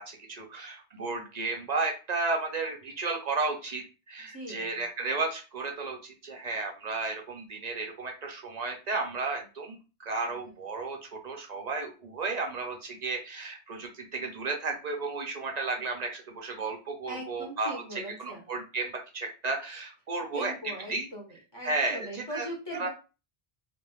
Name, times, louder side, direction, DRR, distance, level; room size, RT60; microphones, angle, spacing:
voice 1, 0.0-20.5 20.9-21.1 21.6-22.5 22.8-22.9, right 3 dB, 55° right, 2 dB, 0.5 m, -33 dB
voice 2, 4.3-4.8 10.2-10.6 17.1-18.6 20.3-22.9, right 1 dB, 25° left, -2 dB, 0.8 m, -41 dB
3.1 x 2.5 x 2.3 m, 0.32 s
omnidirectional pair, 1.1 m